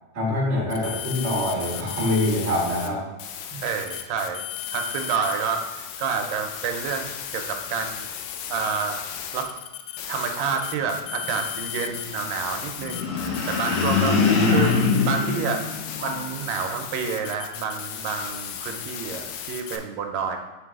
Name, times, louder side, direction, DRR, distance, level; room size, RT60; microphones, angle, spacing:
voice 1, 0.1-3.0 3.5-3.6, left 1 dB, 25° right, -6 dB, 1.7 m, -25 dB
sound 1, 0.7-2.9 3.2-19.8, left 10 dB, 85° left, 2.3 m, -35 dB
voice 2, 3.6-4.5 4.7-7.1 7.3-8.0 8.5-9.0 9.3-9.5 10.1-13.2 13.5-14.8 15.0-15.7 16.0-20.4, right 6 dB, 85° right, 5 dB, 2.3 m, -28 dB
sound 2, 12.8-16.4, left 5 dB, 70° left, 1.9 m, -23 dB
8.5 x 3.9 x 3.6 m, 1.1 s
omnidirectional pair, 3.9 m